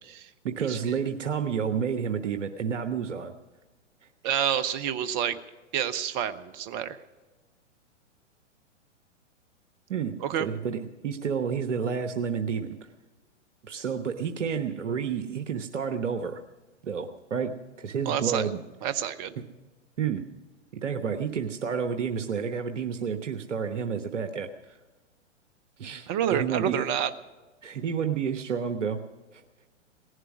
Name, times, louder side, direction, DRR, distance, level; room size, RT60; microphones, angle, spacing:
voice 1, 0.4-3.3 9.9-12.8 13.6-16.4 16.8-18.6 20.0-20.3 20.7-24.8 25.8-26.8 27.6-29.0, right 7 dB, 70° right, 7 dB, 1.1 m, -30 dB
voice 2, 4.2-5.4 5.7-7.0 10.2-10.5 18.1-18.5 18.8-19.3 26.1-27.1, right 9 dB, 30° right, 12 dB, 0.7 m, -28 dB
18.0 x 11.0 x 6.2 m, 1.2 s
figure-of-eight pair, 115°, 38 cm